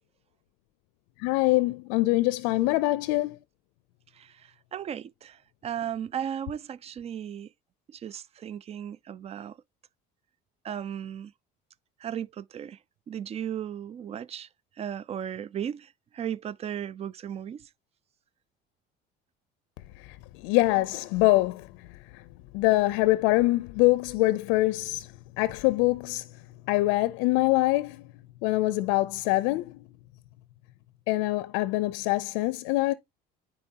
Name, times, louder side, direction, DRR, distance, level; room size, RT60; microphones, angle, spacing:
voice 1, 1.2-3.4 20.4-21.9 22.1-22.2 22.5-25.1 25.4-26.2 26.7-28.0 28.4-29.8 31.1-32.9, left 19 dB, 85° left, 0.5 m, -24 dB
voice 2, 4.1-7.5 7.9-9.6 10.6-11.3 12.0-12.8 13.1-14.5 14.8-17.7, right 9 dB, 35° right, 0.4 m, -36 dB
9.7 x 4.4 x 2.8 m
cardioid pair, 105°, 19 cm